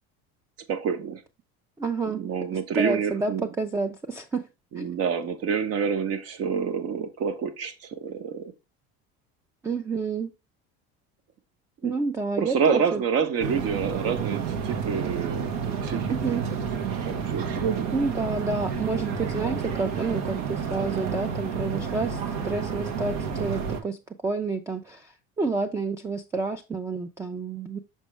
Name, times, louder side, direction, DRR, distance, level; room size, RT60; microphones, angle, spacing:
voice 1, 0.7-1.2 2.1-3.5 4.7-8.5 11.8-11.9 12.4-16.4 17.1-17.9, right 7 dB, 50° right, 1.2 m, -28 dB
voice 2, 1.8-2.3 2.8-4.5 4.8-4.9 9.6-10.3 11.8-13.0 16.1-16.5 17.9-24.0 24.2-27.8, right 4 dB, 10° right, 0.4 m, -29 dB
sound 1, 13.4-23.8, right 6 dB, 85° right, 1.4 m, -30 dB
6.3 x 5.0 x 3.2 m
cardioid pair, 155°, 30 cm